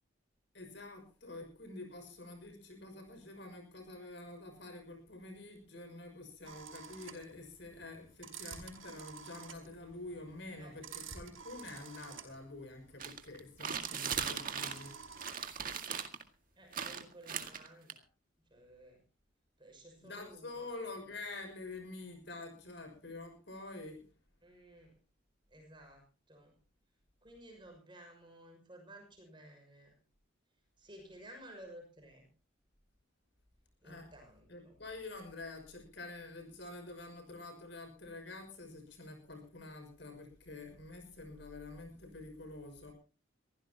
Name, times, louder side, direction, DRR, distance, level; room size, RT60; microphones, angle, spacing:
voice 1, 0.5-15.0 20.0-24.0 33.8-34.1 34.5-42.9, left 2 dB, 60° left, 5 dB, 6.2 m, -47 dB
sound 1, 6.4-15.6, right 6 dB, 80° right, 4.9 m, -49 dB
sound 2, 13.0-14.9 15.2-16.2 16.7-17.9, right 7 dB, 45° right, 2.1 m, -38 dB
voice 2, 16.6-18.0 18.5-19.0 19.6-20.6 24.4-24.9 25.5-26.0 26.3-26.5 27.2-29.9 30.8-32.3 33.8-34.7, right 1 dB, 25° right, 3 dB, 6.4 m, -55 dB
24.0 x 16.0 x 2.9 m, 0.36 s
head